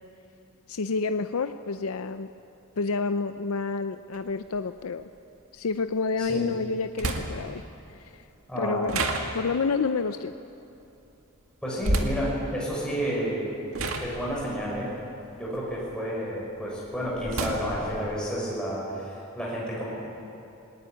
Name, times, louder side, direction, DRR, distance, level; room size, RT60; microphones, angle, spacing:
voice 1, 0.7-2.3 2.8-5.1 5.5-7.6 7.9-8.3 8.6-10.3, left 4 dB, 75° left, 10 dB, 0.6 m, -29 dB
sound 1, 4.1-4.2 6.2-6.3 7.0-7.6 8.9-9.7 11.8-12.3 13.2-13.4 13.7-16.1 16.5-18.1, right 2 dB, 70° right, 2.0 m, -30 dB
voice 2, 6.2-6.5 8.5-8.8 11.6-13.4 14.0-14.9 15.3-19.9, equal, 5° left, -5 dB, 6.7 m, -30 dB
20.0 x 18.5 x 9.8 m, 2.9 s
head